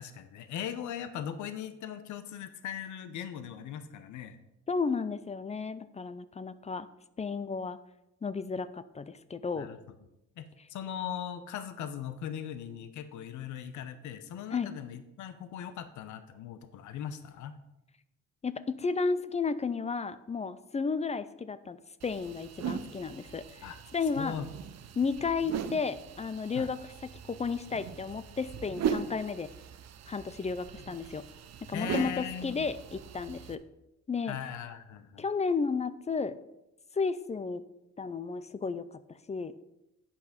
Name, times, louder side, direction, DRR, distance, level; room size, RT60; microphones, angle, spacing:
voice 1, 0.0-4.4 9.5-9.8 10.4-17.5 23.6-23.8 24.2-24.5 26.5-26.7 31.7-32.6 34.3-35.2, left 9 dB, 75° left, 10 dB, 0.7 m, -39 dB
voice 2, 4.7-6.9 7.2-7.8 8.2-9.7 14.5-14.7 18.4-21.8 22.0-23.5 23.9-24.4 25.0-26.8 27.3-29.5 30.1-31.2 31.7-33.6 34.1-34.4 35.2-36.4 37.0-37.7 38.0-38.9 39.3-39.5, left 4 dB, 25° left, 14 dB, 0.4 m, -33 dB
sound 1, 22.0-33.6, right 7 dB, 60° right, 0.7 m, -39 dB
8.5 x 5.5 x 5.1 m, 0.91 s
cardioid pair, 90°, 30 cm